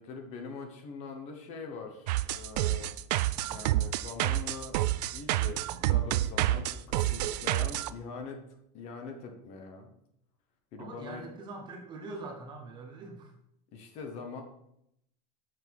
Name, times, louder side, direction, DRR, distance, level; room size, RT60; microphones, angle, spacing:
voice 1, 0.0-3.0 3.4-8.4 8.7-9.9 10.7-11.2 13.7-14.4, left 4 dB, 35° left, 5 dB, 0.9 m, -43 dB
sound 1, 2.1-7.9, right 15 dB, 85° right, 0.4 m, -28 dB
voice 2, 10.8-13.3, right 3 dB, 20° right, 3 dB, 0.8 m, -43 dB
6.1 x 5.4 x 4.6 m, 0.77 s
supercardioid pair, 180°, 21 cm